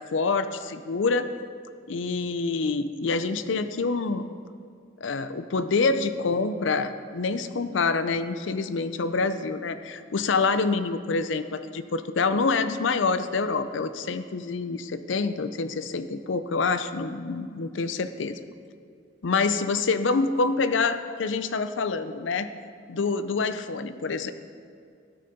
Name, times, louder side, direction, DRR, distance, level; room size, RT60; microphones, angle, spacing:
voice 1, 0.1-1.3 1.9-4.3 5.0-18.4 19.2-22.5 22.9-24.3, left 4 dB, 85° left, 11 dB, 0.5 m, -26 dB
13.0 x 6.8 x 5.1 m, 2.4 s
head